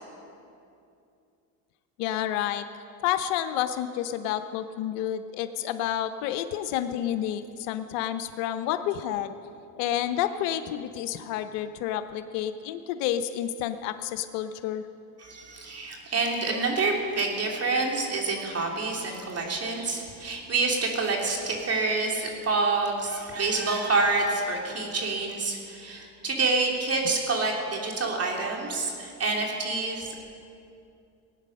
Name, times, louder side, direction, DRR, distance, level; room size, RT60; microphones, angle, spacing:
voice 1, 2.0-2.6 3.0-9.3 9.8-14.8, left 11 dB, 80° left, 10 dB, 0.8 m, -30 dB
voice 2, 15.2-30.2, right 3 dB, 35° right, 0 dB, 3.1 m, -27 dB
19.0 x 9.1 x 6.5 m, 2.6 s
supercardioid pair, 95°, 43 cm